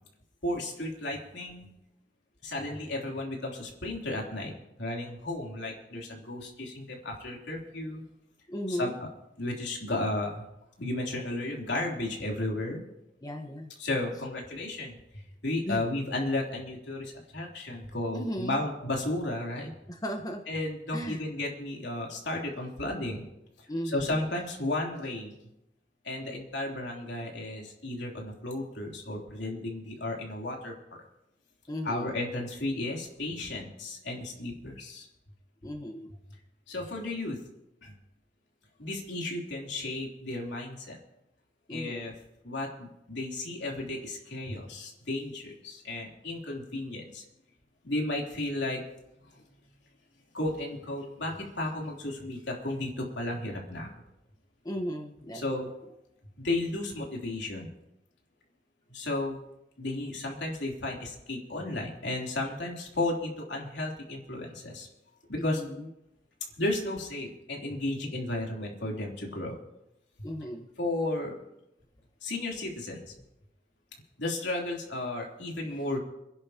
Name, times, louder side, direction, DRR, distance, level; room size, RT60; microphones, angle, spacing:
voice 1, 0.4-1.7 2.4-4.5 4.8-8.0 8.7-8.9 9.4-10.4 10.8-12.8 13.8-19.7 20.5-23.3 23.6-25.3 26.0-30.8 31.9-35.1 36.7-37.4 37.8-37.9 38.8-41.0 41.7-42.1 42.4-47.2 47.8-48.8 49.3-49.4 50.3-53.9 55.3-55.7 56.4-57.7 58.9-59.4 59.8-64.9 65.3-65.6 66.6-69.6 70.2-70.3 70.8-71.4 72.2-73.1 74.2-76.0, left 2 dB, 80° left, -1 dB, 3.3 m, -33 dB
voice 2, 8.5-9.0 13.2-13.7 15.7-15.9 18.1-18.7 19.9-20.4 20.9-21.2 23.7-24.2 31.7-32.2 35.6-36.1 41.7-42.1 54.6-55.7 65.4-65.9 70.2-70.7, equal, 20° left, 3 dB, 1.2 m, -36 dB
28.5 x 11.0 x 2.9 m, 0.86 s
head